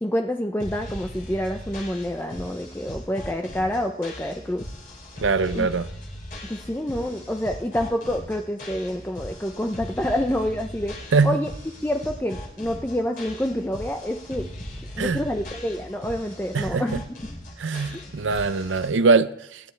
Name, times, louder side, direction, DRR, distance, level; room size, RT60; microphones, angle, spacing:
voice 1, 0.0-4.7 5.5-5.7 6.4-11.5 11.8-14.5 15.0-17.0, equal, 10° left, 0.6 m, -27 dB
sound 1, 0.6-18.9, left 1 dB, 50° left, 3.3 m, -39 dB
voice 2, 5.2-5.9 11.1-11.3 15.0-15.2 16.5-16.8 17.6-19.6, right 4 dB, 85° right, 0.6 m, -22 dB
23.5 x 9.5 x 3.3 m
head